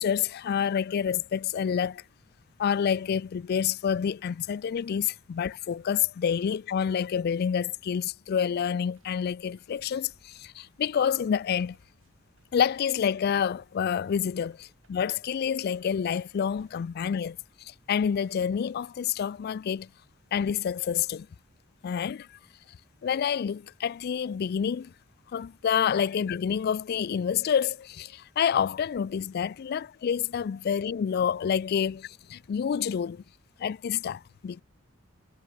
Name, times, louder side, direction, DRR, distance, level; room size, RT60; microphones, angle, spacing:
voice 1, 0.0-2.0 2.6-11.8 12.5-19.9 20.3-21.3 21.8-22.4 23.0-24.9 25.3-33.2 33.6-34.6, left 8 dB, 50° left, 0.3 m, -28 dB
sound 1, 8.9-18.8, right 2 dB, 75° right, 5.3 m, -68 dB
head